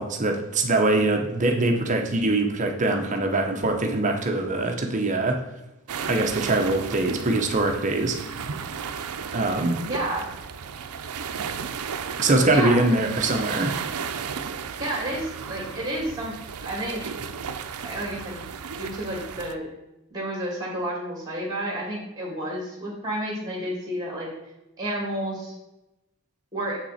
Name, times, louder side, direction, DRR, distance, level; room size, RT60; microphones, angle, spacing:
voice 1, 0.0-5.4 6.1-8.2 9.3-9.8 12.2-13.8, right 2 dB, 35° right, 4 dB, 0.8 m, -23 dB
sound 1, 5.9-19.5, right 6 dB, 90° right, 0.5 m, -34 dB
voice 2, 9.8-10.3 12.5-12.9 14.8-16.3 16.6-17.0 17.8-18.4 18.8-19.7 20.1-24.3 24.8-25.5 26.5-26.8, right 1 dB, 20° right, -2 dB, 2.6 m, -30 dB
7.5 x 6.1 x 4.2 m, 0.96 s
head